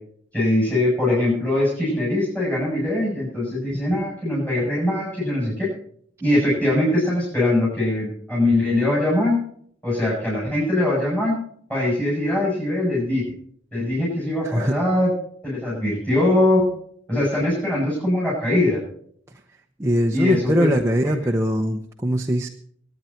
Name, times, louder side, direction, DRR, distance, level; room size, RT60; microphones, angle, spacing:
voice 1, 0.3-5.7 6.2-9.4 9.8-11.4 11.7-13.2 13.7-15.1 15.4-16.6 17.1-18.8 20.1-20.8, left 1 dB, 5° left, -7 dB, 7.9 m, -22 dB
voice 2, 14.4-14.8 19.8-22.5, equal, 15° right, 1 dB, 0.9 m, -21 dB
24.5 x 9.4 x 4.5 m, 0.62 s
head